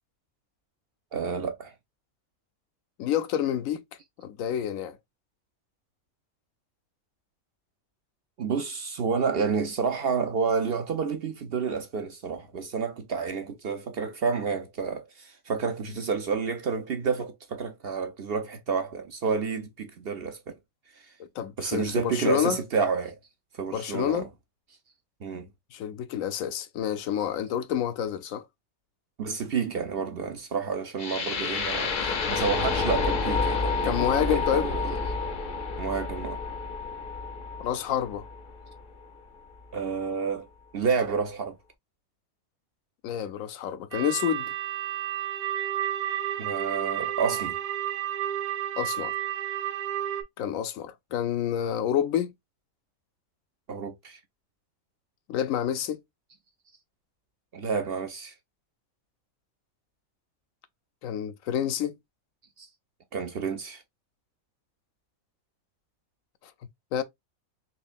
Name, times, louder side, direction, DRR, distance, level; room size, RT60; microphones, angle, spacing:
voice 1, 1.1-1.7 8.4-20.6 20.9-21.1 21.6-23.2 23.5-24.3 25.2-25.5 29.2-35.0 35.8-36.4 39.7-40.5 40.7-41.6 46.4-47.6 53.7-54.2 57.5-58.3 62.6-62.7 63.1-63.8, right 5 dB, 55° right, 0.7 m, -30 dB
voice 2, 3.0-3.8 4.2-5.0 21.2-22.6 23.7-24.3 25.7-28.5 33.8-34.7 37.6-38.2 43.0-44.5 48.8-49.1 50.4-52.3 55.3-56.0 61.0-62.0 66.9-67.0, left 9 dB, 75° left, 0.9 m, -28 dB
sound 1, 31.0-39.0, left 4 dB, 45° left, 0.7 m, -29 dB
sound 2, 43.9-50.2, right 11 dB, 80° right, 1.2 m, -31 dB
4.3 x 3.1 x 2.5 m
omnidirectional pair, 1.5 m